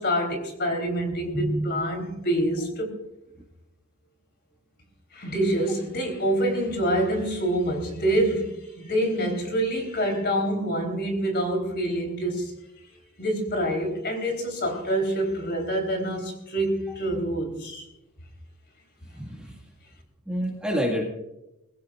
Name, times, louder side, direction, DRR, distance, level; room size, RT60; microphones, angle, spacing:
voice 1, 0.0-2.9 5.1-12.5 13.2-17.9, right 1 dB, 50° left, 4 dB, 3.5 m, -26 dB
voice 2, 1.3-1.8 19.1-19.6 20.3-21.0, equal, 5° right, -1 dB, 1.9 m, -28 dB
21.0 x 15.5 x 2.5 m, 0.90 s
head